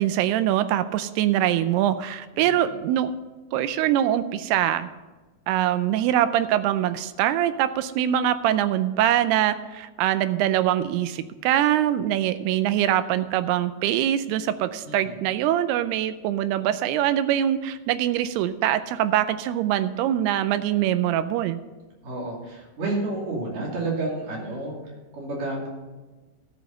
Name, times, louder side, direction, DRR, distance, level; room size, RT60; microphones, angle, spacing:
voice 1, 0.0-3.1 3.5-4.9 5.5-21.6, right 11 dB, 80° right, 12 dB, 2.4 m, -23 dB
voice 2, 2.3-2.7 14.8-15.2 22.0-24.8 25.1-25.7, right 2 dB, 55° right, -3 dB, 3.9 m, -30 dB
12.5 x 6.3 x 6.8 m, 1.2 s
omnidirectional pair, 4.9 m